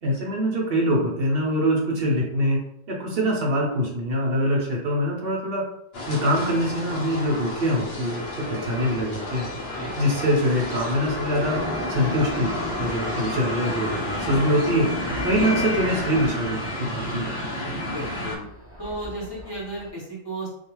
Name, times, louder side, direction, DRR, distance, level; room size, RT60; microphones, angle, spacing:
voice 1, 0.0-2.6 2.9-5.7 6.1-9.5 10.0-11.6 11.9-15.0 15.2-17.4, equal, 55° right, -1 dB, 0.8 m, -24 dB
sound 1, 5.9-18.4, left 1 dB, 60° left, 0.8 m, -31 dB
Thunder, 8.6-19.9, equal, 20° right, 0.4 m, -37 dB
voice 2, 17.7-18.5 18.8-20.5, right 1 dB, 20° left, -6 dB, 0.8 m, -34 dB
2.3 x 2.3 x 2.9 m, 0.75 s
omnidirectional pair, 1.3 m